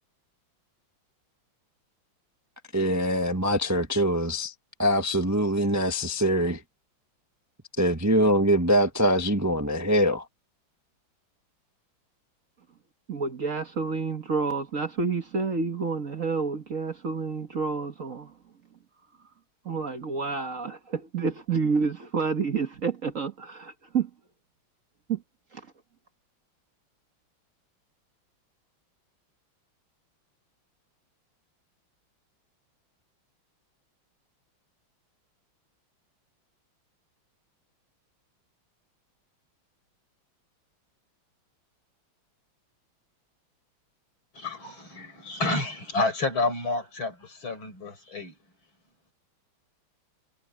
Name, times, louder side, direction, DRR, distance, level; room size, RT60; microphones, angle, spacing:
voice 1, 2.7-4.5 4.8-6.6 7.8-10.2, equal, 10° right, 0.9 m, -23 dB
voice 2, 13.1-18.3 19.6-24.1 25.1-25.2 25.5-25.6, right 5 dB, 45° right, 1.5 m, -29 dB
voice 3, 44.3-48.3, left 2 dB, 75° left, 6.9 m, -30 dB
omnidirectional pair, 2.2 m